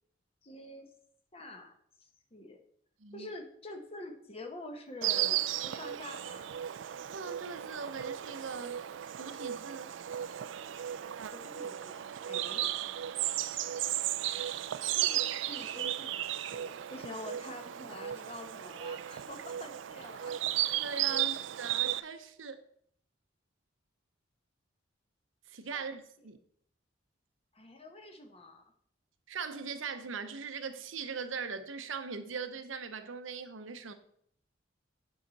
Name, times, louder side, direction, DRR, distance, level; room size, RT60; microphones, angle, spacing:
voice 1, 0.4-0.9 1.3-2.6 3.1-6.6 11.3-12.7 13.7-13.9 14.8-20.4 25.7-25.9 26.2-26.3 27.5-28.6, left 2 dB, 30° left, 1.0 m, -47 dB
voice 2, 3.0-3.3 7.1-8.8 9.2-9.9 20.7-22.7 25.5-26.4 29.3-33.9, right 5 dB, 90° right, 0.8 m, -40 dB
Insect, 5.0-22.0, right 12 dB, 70° right, 0.3 m, -35 dB
8.9 x 5.7 x 4.0 m
head